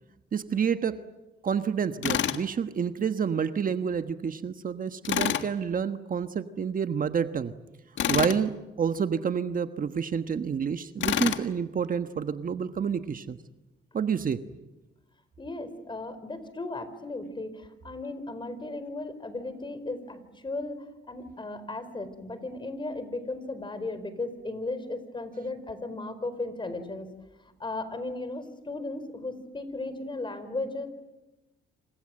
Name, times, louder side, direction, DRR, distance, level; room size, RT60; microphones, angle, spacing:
voice 1, 0.3-1.0 1.4-7.5 8.1-13.4 13.9-14.4, right 7 dB, 45° right, 9 dB, 1.3 m, -29 dB
Tools, 2.0-2.4 5.0-5.5 8.0-8.4 11.0-11.5, left 10 dB, 70° left, 1.7 m, -27 dB
voice 2, 15.4-30.9, left 2 dB, 25° left, 12 dB, 4.6 m, -36 dB
28.0 x 26.0 x 7.8 m, 1.0 s
cardioid pair, 90°, 20 cm